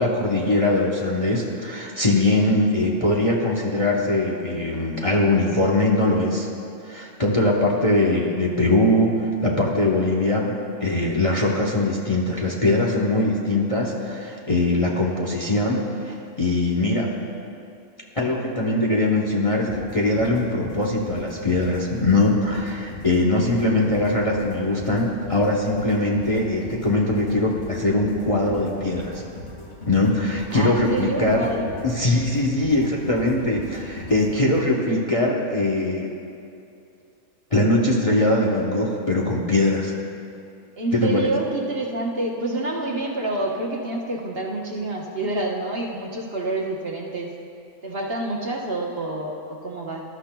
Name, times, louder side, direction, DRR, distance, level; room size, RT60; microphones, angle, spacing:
voice 1, 0.0-6.5 6.8-9.1 9.4-10.5 10.8-17.1 18.2-29.2 29.9-31.5 31.8-36.1 37.5-39.9 40.9-41.2, left 2 dB, 30° left, -2 dB, 0.9 m, -21 dB
sound 1, 19.7-34.9, left 1 dB, 85° left, 2.3 m, -39 dB
voice 2, 30.5-31.8 40.8-47.3 47.8-50.0, right 2 dB, 50° right, -2 dB, 1.3 m, -28 dB
19.5 x 12.0 x 2.3 m, 2.6 s
omnidirectional pair, 1.4 m